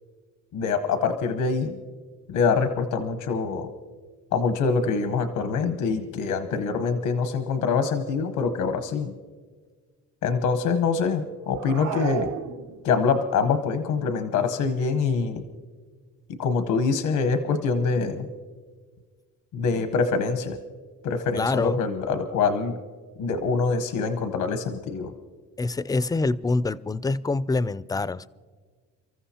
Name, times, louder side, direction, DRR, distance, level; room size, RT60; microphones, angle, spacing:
voice 1, 0.5-1.8 2.3-3.7 4.3-9.1 10.2-12.3 12.8-15.4 16.4-18.3 19.5-20.6 21.0-22.8 23.2-25.1, left 5 dB, 90° left, 8 dB, 1.0 m, -25 dB
sound 1, 11.5-13.1, right 7 dB, 60° right, 0.7 m, -32 dB
voice 2, 21.4-21.8 25.6-28.3, left 3 dB, 15° left, 17 dB, 0.4 m, -25 dB
30.0 x 14.0 x 2.9 m, 1.5 s
cardioid pair, 90°, 30 cm